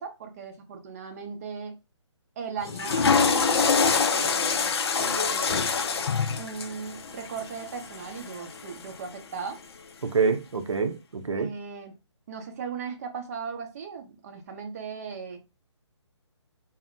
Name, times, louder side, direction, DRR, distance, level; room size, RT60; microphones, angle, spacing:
voice 1, 0.0-1.7 2.4-5.7 6.4-9.6 11.4-12.0 12.3-15.4, right 6 dB, 30° right, 0.6 m, -38 dB
Water / Toilet flush, 2.6-8.9, left 5 dB, 55° left, 0.4 m, -25 dB
voice 2, 10.0-11.5, right 5 dB, 80° right, 0.5 m, -26 dB
2.1 x 2.0 x 3.6 m
figure-of-eight pair, 140°, 15 cm